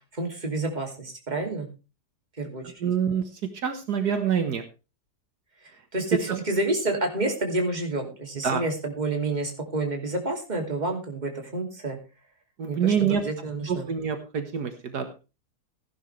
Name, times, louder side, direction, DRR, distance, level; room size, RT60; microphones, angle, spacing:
voice 1, 0.1-1.7 2.4-2.6 5.9-12.0 12.7-13.9, right 2 dB, 25° right, 2 dB, 2.8 m, -29 dB
voice 2, 2.8-3.2 3.6-4.6 8.4-8.6 12.6-13.2 13.7-15.1, right 7 dB, 75° right, 7 dB, 1.9 m, -26 dB
16.0 x 11.0 x 3.3 m, 0.30 s
omnidirectional pair, 1.7 m